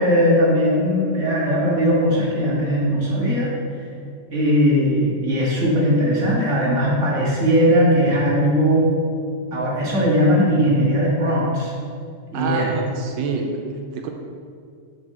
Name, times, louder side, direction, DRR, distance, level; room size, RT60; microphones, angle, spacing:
voice 1, 0.0-3.5 4.3-8.9 9.5-11.7 12.3-12.7, equal, 40° right, -5 dB, 2.0 m, -19 dB
voice 2, 12.3-14.1, right 5 dB, 85° right, 3 dB, 1.3 m, -27 dB
11.0 x 4.5 x 3.7 m, 2.2 s
omnidirectional pair, 2.0 m